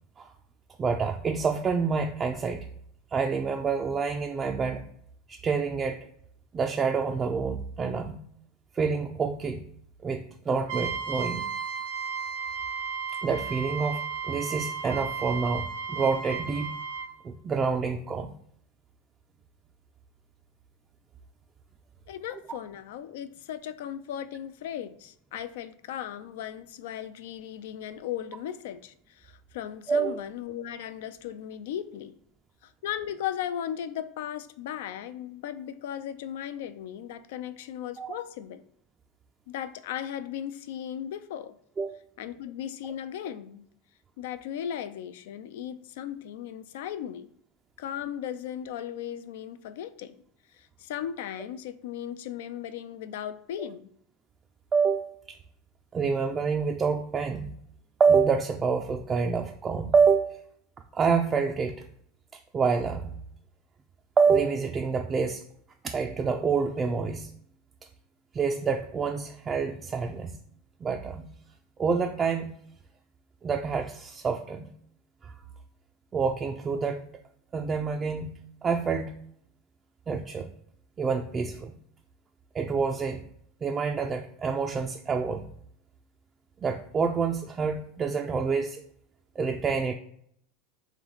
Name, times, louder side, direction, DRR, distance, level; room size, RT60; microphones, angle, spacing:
voice 1, 0.8-2.6 3.1-4.8 5.3-6.0 6.5-8.2 8.7-9.6 10.0-11.4 13.2-16.7 17.2-18.3 29.9-30.2 38.0-38.1 41.8-42.0 54.7-55.4 55.9-57.5 58.0-60.4 60.9-61.7 62.5-63.2 64.2-65.4 65.8-67.3 68.3-70.4 70.8-71.3 71.8-72.5 73.4-74.7 75.2-75.3 76.1-77.1 77.5-78.3 78.6-79.1 80.1-80.5 81.0-81.7 82.5-83.2 83.6-85.5 86.6-88.8 89.4-89.9, right 5 dB, 25° right, 0.3 m, -27 dB
Trumpet, 10.7-17.1, right 5 dB, 85° right, 1.1 m, -34 dB
voice 2, 22.1-32.2 32.6-38.6 39.5-41.6 42.2-43.6 44.2-47.3 47.8-50.2 50.5-53.9, left 10 dB, 75° left, 0.3 m, -37 dB
3.1 x 3.1 x 3.9 m
supercardioid pair, 105°, 0 cm